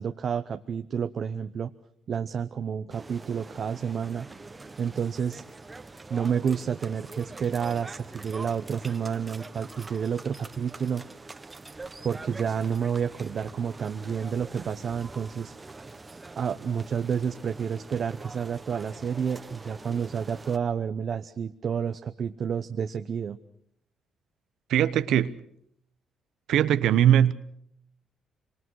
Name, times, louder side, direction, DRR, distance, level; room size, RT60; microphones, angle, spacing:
voice 1, 0.0-1.7 2.1-4.3 4.8-5.4 6.1-11.0 12.0-15.5 16.4-23.4, right 7 dB, 55° right, 0.9 m, -30 dB
sound 1, 2.9-20.6, right 3 dB, 20° right, 1.2 m, -44 dB
voice 2, 24.7-25.3 26.5-27.3, right 10 dB, 80° right, 1.0 m, -20 dB
25.0 x 25.0 x 6.4 m
cardioid pair, 90°, 0 cm